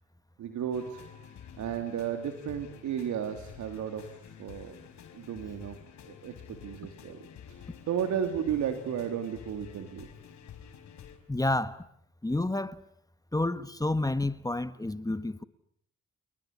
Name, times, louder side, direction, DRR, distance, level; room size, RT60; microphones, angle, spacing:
voice 1, 0.4-4.1 4.4-4.8 5.1-5.8 6.0-7.2 7.5-10.1, right 8 dB, 75° right, 2.8 m, -34 dB
sound 1, 0.7-11.2, left 8 dB, 70° left, 4.9 m, -49 dB
voice 2, 11.3-11.8 12.2-12.8 13.3-15.4, left 2 dB, 10° left, 1.5 m, -29 dB
29.5 x 20.0 x 9.8 m
supercardioid pair, 65°, 29 cm